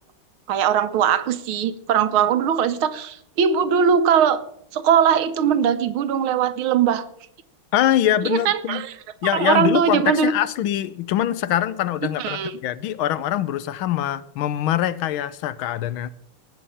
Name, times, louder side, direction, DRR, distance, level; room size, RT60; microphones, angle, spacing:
voice 1, 0.5-4.4 4.7-7.0 8.2-8.9 9.3-10.3 12.2-12.5, right 8 dB, 75° right, 13 dB, 1.7 m, -20 dB
voice 2, 7.7-8.8 9.2-16.1, left 12 dB, 75° left, 16 dB, 1.5 m, -23 dB
18.5 x 7.1 x 5.7 m, 0.71 s
omnidirectional pair, 2.4 m